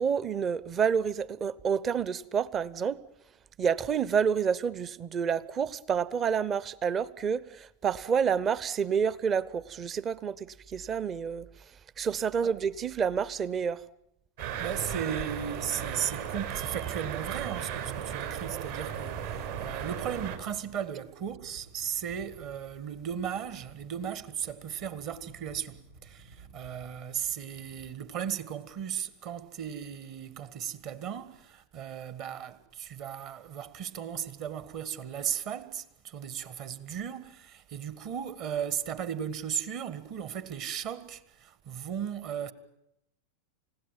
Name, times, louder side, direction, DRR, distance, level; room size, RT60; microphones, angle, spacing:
voice 1, 0.0-3.0 3.6-11.5 12.0-13.8, right 7 dB, 25° right, 0.9 m, -29 dB
sound 1, 14.4-20.4, right 9 dB, 60° right, 4.4 m, -35 dB
voice 2, 14.6-42.5, right 8 dB, 40° right, 1.8 m, -36 dB
sound 2, 19.1-28.0, right 4 dB, 80° right, 7.3 m, -55 dB
29.5 x 17.0 x 9.2 m
figure-of-eight pair, 90°, 0 cm